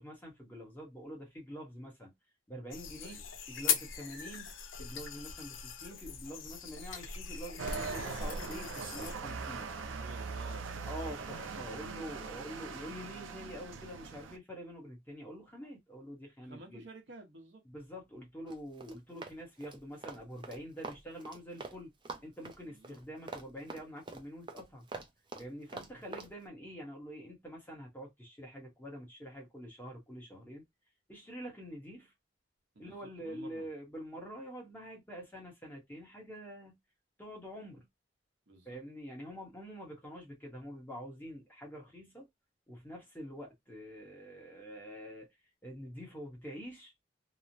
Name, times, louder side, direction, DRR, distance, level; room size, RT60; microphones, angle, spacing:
voice 1, 0.0-2.1 2.5-3.2 3.5-9.7 10.9-16.8 17.6-21.9 22.2-24.9 25.4-30.6 31.1-32.1 32.8-36.8 37.2-37.9 38.7-42.2 42.7-45.3 45.6-47.0, equal, 10° left, 0.9 m, -46 dB
sound 1, 2.7-9.2, left 6 dB, 85° left, 0.6 m, -39 dB
voice 2, 3.0-3.3 9.7-11.3 16.5-17.6 22.6-23.0 32.7-33.7 38.5-38.8, right 1 dB, 65° right, 0.9 m, -53 dB
sound 2, 7.6-14.4, right 5 dB, 85° right, 0.5 m, -41 dB
Run, 18.5-21.8 22.0-26.3, right 3 dB, 25° right, 0.5 m, -45 dB
3.0 x 2.0 x 2.6 m
head